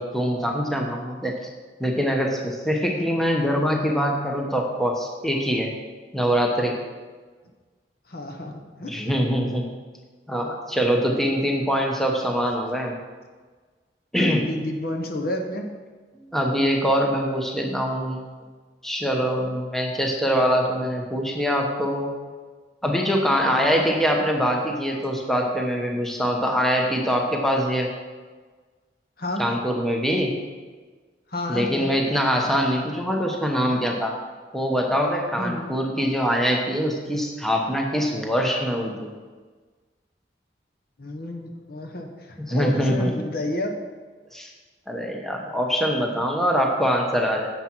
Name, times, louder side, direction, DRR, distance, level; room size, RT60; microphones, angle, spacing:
voice 1, 0.0-1.4 1.8-5.7 6.1-6.8 8.9-9.7 10.3-12.9 14.1-14.5 16.3-18.2 18.8-22.1 22.8-27.9 29.4-30.4 31.5-34.1 34.5-39.1 42.5-43.1 44.3-44.5 44.9-47.5, equal, ahead, 0 dB, 1.0 m, -23 dB
voice 2, 2.7-3.1 8.1-8.9 14.2-15.7 23.5-23.8 29.2-29.4 31.3-31.9 35.4-35.7 41.0-43.7, left 1 dB, 55° left, 3 dB, 1.1 m, -31 dB
9.8 x 7.4 x 4.6 m, 1.4 s
head